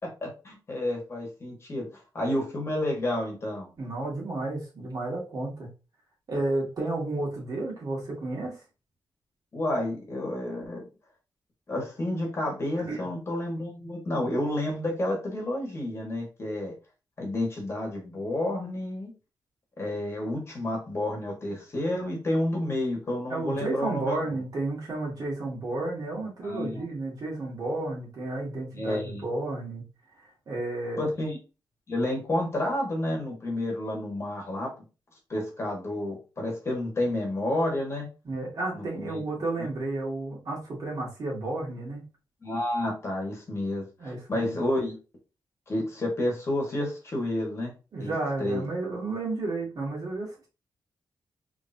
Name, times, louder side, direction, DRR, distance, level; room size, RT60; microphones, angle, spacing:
voice 1, 0.0-1.9 2.1-3.7 9.5-10.8 11.7-16.7 17.2-19.1 19.8-24.4 26.4-26.8 28.7-29.2 31.0-31.4 31.9-34.7 35.3-38.1 38.7-39.2 42.4-44.9 45.7-47.7 48.0-48.1 48.4-48.7, left 1 dB, 35° left, -1 dB, 1.5 m, -30 dB
voice 2, 3.8-5.7 6.3-8.6 12.9-13.1 23.3-29.8 30.5-31.1 38.2-42.0 44.0-44.6 47.9-50.5, right 2 dB, 50° right, -4 dB, 2.1 m, -32 dB
3.8 x 3.4 x 2.7 m, 0.32 s
wide cardioid pair, 150°, 8 cm